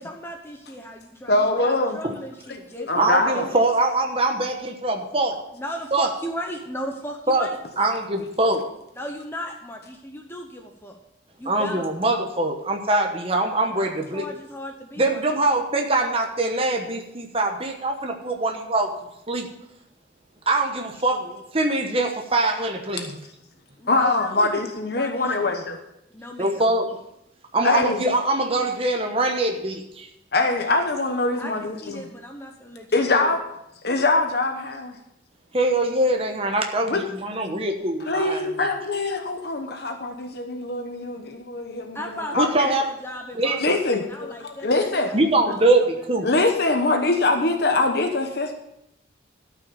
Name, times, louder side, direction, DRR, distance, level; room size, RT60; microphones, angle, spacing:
voice 1, 0.0-3.6 5.5-7.6 8.9-11.0 11.4-11.9 13.8-15.2 23.8-24.5 24.9-25.5 26.1-26.7 31.4-31.5 31.8-33.3 41.9-45.7 47.4-47.5, equal, 10° left, 2 dB, 0.9 m, -36 dB
voice 2, 1.3-2.0 2.8-3.4 23.9-25.8 27.6-28.0 30.3-32.0 32.9-33.4 33.8-35.0 36.9-37.0 38.1-42.7 43.6-45.1 46.2-48.5, left 2 dB, 55° left, 4 dB, 1.0 m, -23 dB
voice 3, 2.9-5.4 5.9-6.1 7.3-7.5 7.8-8.7 11.4-14.3 15.0-18.9 19.3-19.5 20.5-23.1 26.4-26.9 27.5-30.1 35.5-38.7 42.4-42.8 43.4-43.6 45.1-46.3, right 2 dB, 30° right, 3 dB, 1.1 m, -23 dB
13.0 x 6.0 x 6.9 m, 0.83 s
head